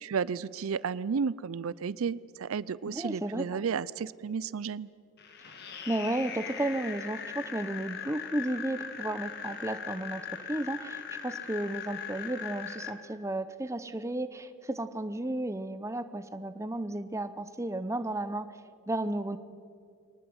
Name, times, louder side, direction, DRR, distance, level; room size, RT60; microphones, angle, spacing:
voice 1, 0.0-4.9, right 6 dB, 75° right, 20 dB, 0.4 m, -32 dB
voice 2, 2.9-3.6 5.9-10.2 10.5-18.5 18.9-19.4, right 1 dB, 15° right, 11 dB, 0.7 m, -33 dB
sound 1, 5.2-12.9, left 7 dB, 50° left, 1.9 m, -40 dB
23.5 x 19.0 x 7.9 m, 2.4 s
head